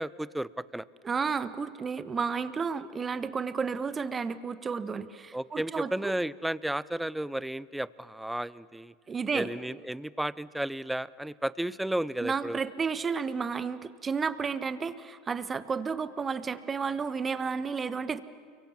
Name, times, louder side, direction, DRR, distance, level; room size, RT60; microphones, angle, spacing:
voice 1, 0.0-0.8 5.3-8.9 9.3-12.6, right 1 dB, 5° right, 19 dB, 0.7 m, -33 dB
voice 2, 1.0-6.1 9.1-9.5 12.2-18.2, right 5 dB, 25° right, 13 dB, 1.4 m, -32 dB
29.5 x 24.0 x 7.5 m, 2.1 s
hypercardioid pair, 95°, 0 cm